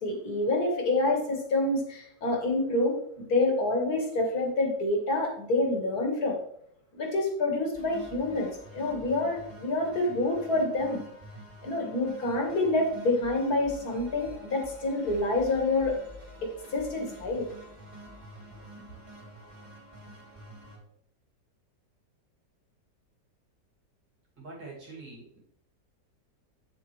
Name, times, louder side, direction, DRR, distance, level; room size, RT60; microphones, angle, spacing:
voice 1, 0.0-6.4 6.9-11.0 11.6-16.0 16.4-17.5, left 2 dB, 55° left, 1 dB, 2.0 m, -27 dB
sound 1, 7.7-20.8, equal, 15° right, 3.0 m, -48 dB
voice 2, 24.4-25.4, right 3 dB, 75° right, -4 dB, 3.2 m, -44 dB
8.7 x 7.0 x 3.2 m, 0.69 s
omnidirectional pair, 1.9 m